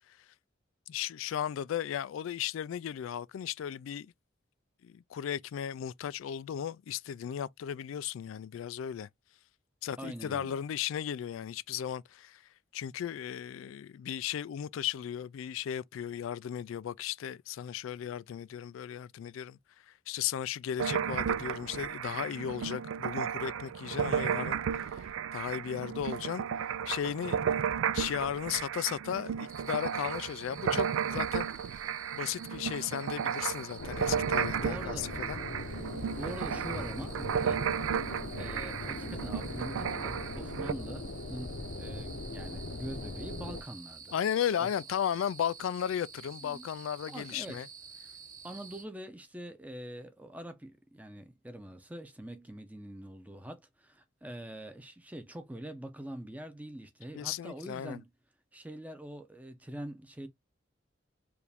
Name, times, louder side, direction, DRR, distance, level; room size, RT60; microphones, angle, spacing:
voice 1, 0.9-4.1 4.8-9.1 9.8-12.4 12.7-19.6 20.1-26.4 26.9-27.4 27.9-31.5 32.1-35.4 44.1-47.7 57.1-58.0, left 9 dB, 85° left, 0.3 m, -35 dB
voice 2, 10.0-10.6 34.6-35.1 36.2-38.1 38.4-44.1 44.6-44.7 46.4-46.7 47.1-47.7 48.4-58.1 58.5-60.3, right 1 dB, 10° right, 0.6 m, -44 dB
sound 1, 20.8-40.7, right 7 dB, 90° right, 0.3 m, -34 dB
sound 2, 29.5-48.8, right 6 dB, 40° right, 1.1 m, -51 dB
sound 3, 33.8-43.6, left 2 dB, 70° left, 0.7 m, -40 dB
4.8 x 2.6 x 3.4 m
head